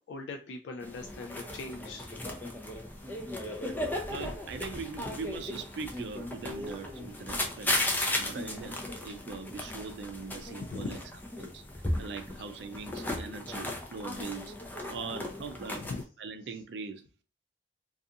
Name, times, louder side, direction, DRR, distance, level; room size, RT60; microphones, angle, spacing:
voice 1, 0.1-2.1 10.6-11.0 14.8-14.9 15.8-16.0, left 3 dB, 80° left, 0.3 m, -40 dB
sound 1, 0.8-16.0, left 1 dB, 10° left, 0.4 m, -36 dB
voice 2, 4.1-7.7 8.2-11.0 11.4-11.6 12.0-14.5 14.9-15.8 16.2-17.0, right 4 dB, 75° right, 0.4 m, -41 dB
2.4 x 2.3 x 2.6 m
head